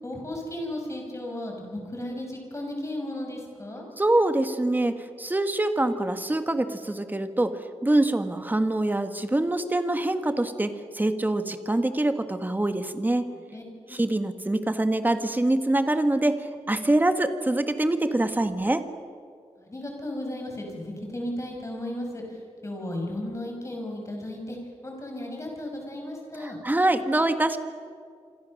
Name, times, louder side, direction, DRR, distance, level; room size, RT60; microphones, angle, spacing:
voice 1, 0.0-3.8 13.5-14.0 19.6-24.6 24.8-26.6, left 1 dB, 25° left, 1 dB, 5.8 m, -35 dB
voice 2, 4.0-13.2 13.9-18.8 26.4-27.6, right 1 dB, 15° right, 8 dB, 1.4 m, -25 dB
26.5 x 26.0 x 6.5 m, 2.2 s
wide cardioid pair, 160°, 12 cm